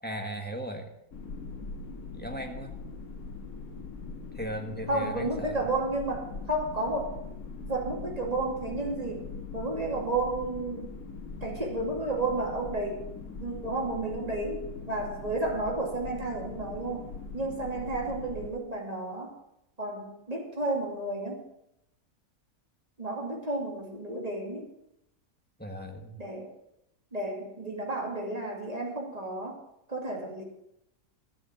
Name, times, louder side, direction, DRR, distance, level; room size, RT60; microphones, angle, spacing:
voice 1, 0.0-0.9 2.1-2.8 4.3-5.6 25.6-26.2, equal, 5° left, 2 dB, 1.3 m, -37 dB
sound 1, 1.1-18.5, left 4 dB, 75° left, 2.0 m, -41 dB
voice 2, 4.9-7.2 7.6-9.3 9.5-10.9 11.4-13.1 13.4-17.1 17.3-19.3 19.8-21.4 23.0-24.7 26.2-26.5 27.1-29.6 29.9-30.4, right 2 dB, 25° right, -1 dB, 2.5 m, -32 dB
13.5 x 7.0 x 7.2 m, 0.82 s
omnidirectional pair, 1.5 m